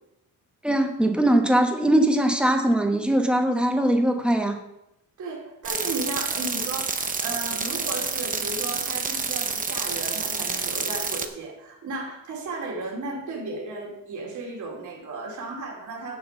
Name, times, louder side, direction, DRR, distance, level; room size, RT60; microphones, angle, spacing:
voice 1, 0.6-4.6, right 1 dB, 5° right, 4 dB, 1.1 m, -21 dB
voice 2, 5.2-16.2, right 3 dB, 55° right, -2 dB, 2.7 m, -34 dB
sound 1, 5.6-11.3, right 5 dB, 25° right, 0.7 m, -28 dB
7.5 x 7.1 x 6.9 m, 0.85 s
cardioid pair, 165°, 36 cm